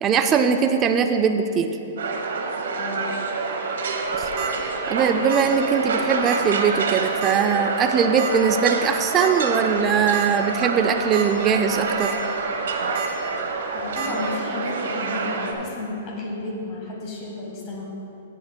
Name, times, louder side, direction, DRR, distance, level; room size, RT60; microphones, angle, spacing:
voice 1, 0.0-1.7 4.2-4.3 4.9-12.1, right 6 dB, 20° right, 6 dB, 0.3 m, -21 dB
sound 1, 2.0-15.5, right 4 dB, 80° right, 1.0 m, -27 dB
voice 2, 2.8-3.1 13.7-17.9, left 2 dB, 30° left, -2 dB, 1.7 m, -32 dB
sound 2, 4.0-4.5 5.3-5.6 5.8-5.9 6.3-6.4 7.2-7.5 8.2-8.3 9.2-9.3 9.8-9.9 10.1-10.3 10.9-11.2 11.7-12.1 12.9-13.1 14.0-14.1, right 7 dB, 40° right, 1.2 m, -31 dB
14.0 x 8.3 x 2.2 m, 2.9 s
hypercardioid pair, 160°, 0 cm